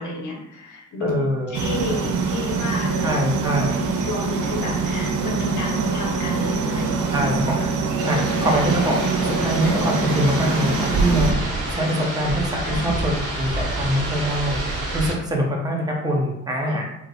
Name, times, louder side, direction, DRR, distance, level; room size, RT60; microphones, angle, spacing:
voice 1, 0.0-1.2 1.5-3.2 3.8-7.3 7.6-7.7 9.6-9.7 12.6-13.0 16.6-16.8, left 2 dB, 80° left, -2 dB, 1.2 m, -31 dB
voice 2, 1.0-1.5 3.0-3.8 7.1-7.6 8.0-16.8, equal, 15° right, -2 dB, 0.7 m, -24 dB
sound 1, 1.5-11.3, right 4 dB, 85° right, 0.6 m, -24 dB
sound 2, 8.0-15.1, right 2 dB, 50° right, 1.4 m, -27 dB
4.5 x 2.1 x 3.8 m, 0.84 s
wide cardioid pair, 160°, 30 cm